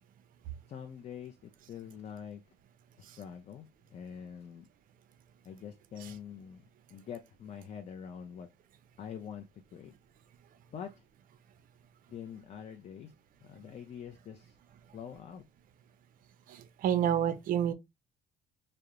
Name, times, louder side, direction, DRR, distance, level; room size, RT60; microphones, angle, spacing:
voice 1, 0.7-2.4 3.0-4.7 5.4-6.6 6.9-8.5 9.0-9.9 10.7-11.0 12.1-13.1 13.4-14.6 14.9-15.4 17.0-17.1, left 8 dB, 40° left, 0.4 m, -45 dB
voice 2, 16.5-17.7, right 9 dB, 55° right, 0.4 m, -29 dB
2.4 x 2.1 x 2.8 m
cardioid pair, 110°, 17 cm